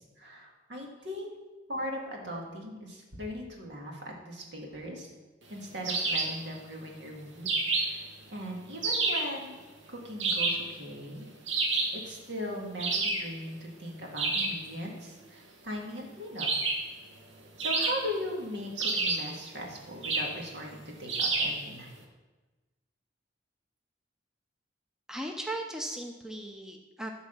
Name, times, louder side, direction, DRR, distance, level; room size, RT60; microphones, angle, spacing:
voice 1, 0.2-1.3 1.7-5.1 5.5-8.1 8.3-9.5 9.9-11.3 11.9-16.5 17.6-21.9, equal, 70° right, -1 dB, 2.0 m, -39 dB
sound 1, 5.8-6.4 7.5-8.1 8.8-9.3 10.2-10.7 11.5-12.0 12.8-13.3 14.2-14.6 16.4-16.9 17.6-18.3 18.8-19.3 20.0-20.4 21.1-21.6, right 3 dB, 90° right, 1.4 m, -29 dB
voice 2, 25.1-27.1, right 1 dB, 5° right, 2 dB, 0.6 m, -37 dB
11.5 x 4.0 x 6.8 m, 1.2 s
head